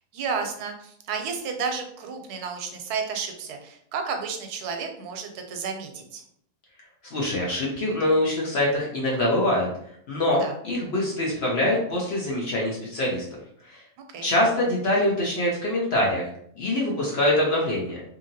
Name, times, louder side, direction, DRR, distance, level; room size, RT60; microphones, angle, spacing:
voice 1, 0.1-6.2 10.4-10.5 14.1-14.3, right 5 dB, 90° right, 4 dB, 1.1 m, -32 dB
voice 2, 7.1-9.7 10.1-13.3 13.6-13.8 14.2-18.0, left 1 dB, 55° left, -3 dB, 0.8 m, -24 dB
2.8 x 2.7 x 2.7 m, 0.69 s
omnidirectional pair, 1.6 m